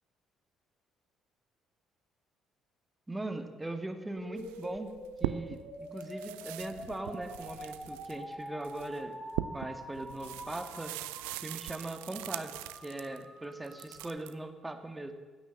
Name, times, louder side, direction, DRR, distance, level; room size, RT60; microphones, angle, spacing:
voice 1, 3.1-4.9 5.2-9.2 9.5-10.9 11.4-15.1, right 2 dB, 15° right, 7 dB, 1.7 m, -40 dB
sound 1, 4.2-14.2, equal, ahead, 4.3 m, -46 dB
sound 2, 4.4-5.7 6.0-13.2 13.6-14.3, right 16 dB, 70° right, 0.4 m, -41 dB
14.5 x 9.3 x 7.6 m, 1.4 s
figure-of-eight pair, 45°, 0 cm